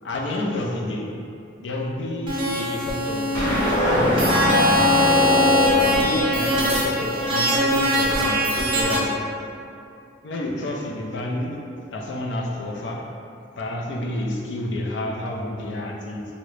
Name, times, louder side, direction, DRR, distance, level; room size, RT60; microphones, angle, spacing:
voice 1, 0.0-1.1 1.6-5.0 5.5-9.2 10.2-11.6 11.9-13.0 13.6-16.2, left 1 dB, 70° left, -1 dB, 0.4 m, -30 dB
sound 1, 2.3-9.0, left 1 dB, 25° right, 0.5 m, -21 dB
sound 2, 3.3-7.7, equal, 15° left, 0.9 m, -23 dB
3.6 x 2.1 x 3.1 m, 2.5 s
head